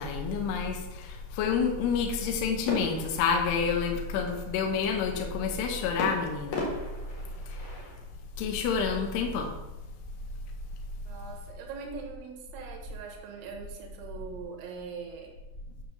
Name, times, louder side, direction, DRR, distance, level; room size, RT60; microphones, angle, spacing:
voice 1, 0.0-6.7 7.5-7.6 8.4-9.5, left 6 dB, 75° left, 2 dB, 2.5 m, -29 dB
sound 1, 2.7-4.2 6.0-8.1, left 2 dB, 50° left, 2.3 m, -37 dB
voice 2, 11.1-15.3, right 5 dB, 70° right, 2 dB, 3.2 m, -42 dB
8.9 x 3.4 x 6.5 m, 1.0 s
omnidirectional pair, 5.8 m